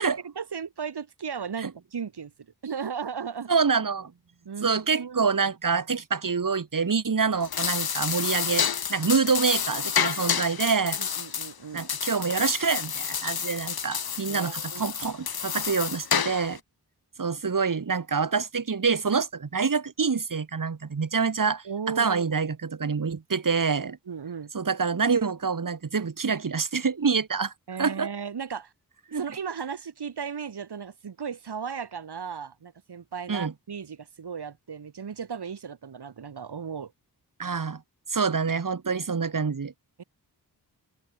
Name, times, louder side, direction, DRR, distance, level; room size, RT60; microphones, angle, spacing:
voice 1, 0.0-3.5 4.5-5.3 11.0-11.9 14.3-14.9 21.6-22.4 23.9-24.5 27.7-28.7 29.1-36.9 40.0-40.1, right 6 dB, 85° right, 3.7 m, -36 dB
voice 2, 3.5-4.1 4.6-11.0 11.7-16.6 17.2-21.7 22.0-24.0 24.5-27.5 27.8-28.1 29.1-29.2 33.3-33.5 37.4-37.8 38.1-39.7, right 5 dB, 55° right, 3.1 m, -26 dB
sound 1, 7.3-16.6, left 7 dB, 70° left, 1.3 m, -29 dB
open air
wide cardioid pair, 115°, 39 cm